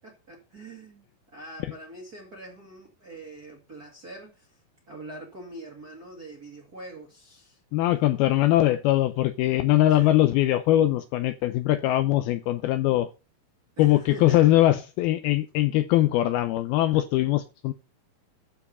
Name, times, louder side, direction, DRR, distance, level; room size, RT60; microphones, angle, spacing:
voice 1, 0.0-4.6 4.9-7.6 10.0-10.2 13.8-14.5, right 2 dB, 35° right, 1.7 m, -43 dB
voice 2, 7.7-13.1 13.8-17.7, left 14 dB, 80° left, 2.3 m, -22 dB
13.5 x 4.8 x 5.3 m
omnidirectional pair, 4.8 m